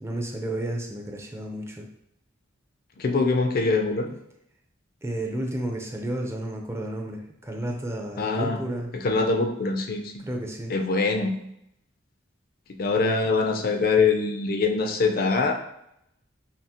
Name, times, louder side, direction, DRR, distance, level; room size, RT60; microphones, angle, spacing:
voice 1, 0.0-1.8 5.0-8.9 10.2-10.7, right 1 dB, 15° right, 1 dB, 0.5 m, -32 dB
voice 2, 3.0-4.1 8.2-8.6 9.0-10.2 10.7-11.4 12.7-15.5, left 4 dB, 50° left, 4 dB, 0.5 m, -23 dB
5.7 x 2.0 x 2.8 m, 0.76 s
head